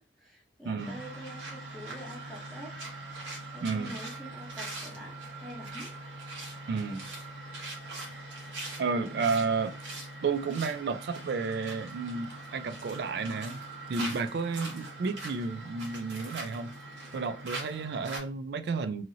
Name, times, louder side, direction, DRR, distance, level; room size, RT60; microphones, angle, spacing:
voice 1, 0.0-2.8 3.5-5.9 9.0-9.5, equal, ahead, 0.7 m, -46 dB
sound 1, 0.8-18.2, right 2 dB, 75° right, 1.1 m, -42 dB
voice 2, 3.6-4.0 6.7-7.1 8.8-9.8 10.2-13.6 13.9-16.7 17.1-19.0, right 4 dB, 60° right, 0.3 m, -32 dB
2.8 x 2.6 x 2.7 m
head